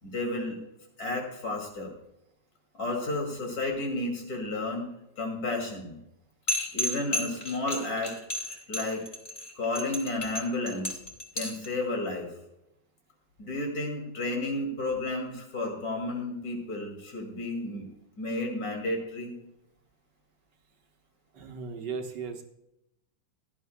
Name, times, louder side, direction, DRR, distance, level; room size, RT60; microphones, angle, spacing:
voice 1, 0.0-0.6 1.0-1.9 2.7-4.9 5.2-6.0 6.7-8.1 8.7-9.0 9.6-11.0 11.3-12.3 13.4-17.9 18.2-19.3, left 2 dB, 55° left, 1 dB, 2.9 m, -32 dB
sound 1, 6.5-11.7, left 1 dB, 20° left, 1.5 m, -32 dB
voice 2, 21.3-22.4, right 5 dB, 70° right, 4 dB, 1.6 m, -36 dB
16.5 x 11.5 x 2.2 m, 0.84 s
omnidirectional pair, 2.0 m